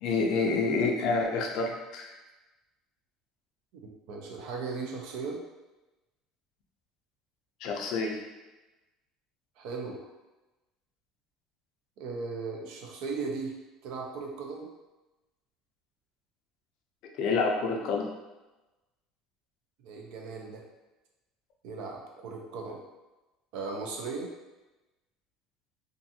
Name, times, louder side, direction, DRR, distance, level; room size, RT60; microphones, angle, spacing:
voice 1, 0.0-2.1 7.6-8.2 17.2-18.1, left 4 dB, 55° left, 1 dB, 0.4 m, -28 dB
voice 2, 4.1-5.4 9.6-10.0 12.0-13.5 13.8-14.7 19.8-20.6 21.6-22.8 23.5-24.3, right 4 dB, 65° right, 1 dB, 0.5 m, -37 dB
2.5 x 2.4 x 2.6 m, 1.1 s
cardioid pair, 160°, 0 cm